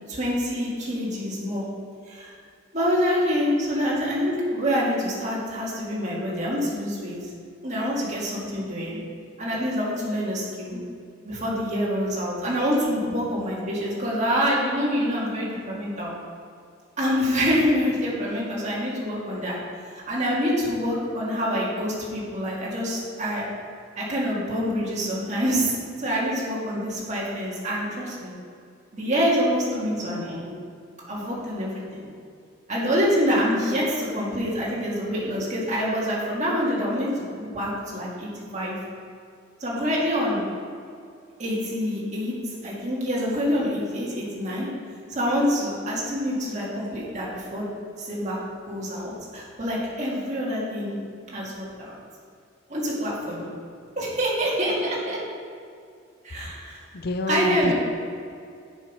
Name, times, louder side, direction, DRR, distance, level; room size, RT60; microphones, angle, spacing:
voice 1, 0.1-1.6 2.1-2.3 2.7-7.3 7.6-9.0 9.4-10.8 11.2-16.1 17.0-19.6 19.8-23.5 24.0-28.3 28.9-30.5 31.1-32.1 32.7-38.8 39.6-40.4 41.4-44.7 45.1-47.7 48.0-48.4 48.6-50.9 51.3-51.9 52.7-53.5 53.9-55.2 56.2-56.8 57.3-57.7, equal, 40° right, -5 dB, 1.8 m, -26 dB
voice 2, 56.9-57.7, left 1 dB, 50° left, 7 dB, 0.6 m, -27 dB
7.5 x 5.4 x 5.3 m, 2.4 s
head